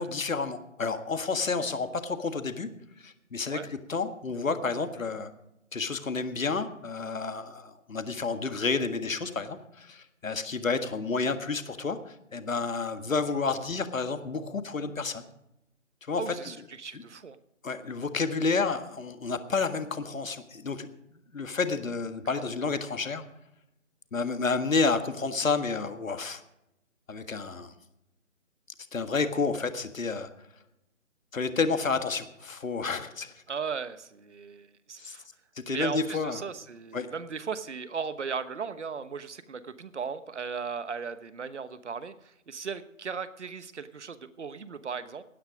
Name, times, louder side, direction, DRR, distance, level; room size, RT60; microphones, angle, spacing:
voice 1, 0.0-2.7 3.0-5.3 5.7-15.3 16.1-16.5 16.9-17.0 17.6-20.9 21.3-23.2 24.1-26.4 27.1-27.7 28.9-30.3 31.3-33.3 35.0-35.2 35.6-36.4 36.9-37.1, left 4 dB, 75° left, 9 dB, 1.7 m, -30 dB
voice 2, 16.2-17.4 22.3-22.4 33.5-35.2 35.7-45.2, right 6 dB, 55° right, 13 dB, 1.2 m, -37 dB
16.5 x 10.0 x 5.1 m, 0.85 s
figure-of-eight pair, 165°, 41 cm